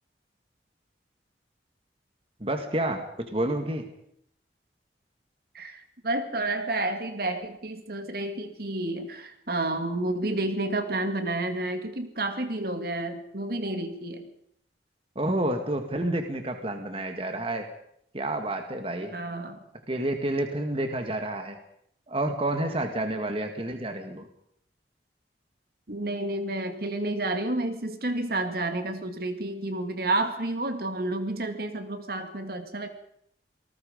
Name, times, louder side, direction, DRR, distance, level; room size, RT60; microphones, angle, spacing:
voice 1, 2.4-3.8 15.2-17.7 18.1-19.2 19.9-21.6 22.1-24.3, right 1 dB, 30° right, 6 dB, 1.9 m, -29 dB
voice 2, 5.5-14.2 19.1-19.6 25.9-32.9, right 2 dB, 60° right, 7 dB, 2.3 m, -30 dB
27.0 x 19.0 x 5.2 m, 0.70 s
head